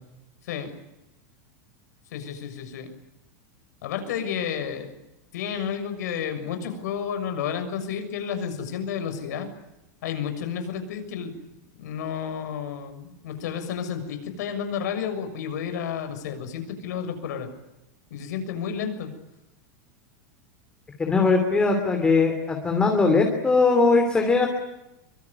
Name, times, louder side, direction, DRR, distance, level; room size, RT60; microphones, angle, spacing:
voice 1, 2.1-2.9 3.8-4.9 5.3-9.5 10.0-11.3 11.8-17.5 18.1-19.1, left 7 dB, 75° left, 8 dB, 6.7 m, -31 dB
voice 2, 21.0-24.5, left 4 dB, 10° left, 4 dB, 3.0 m, -20 dB
24.5 x 24.5 x 9.8 m, 0.93 s
supercardioid pair, 175°, 9 cm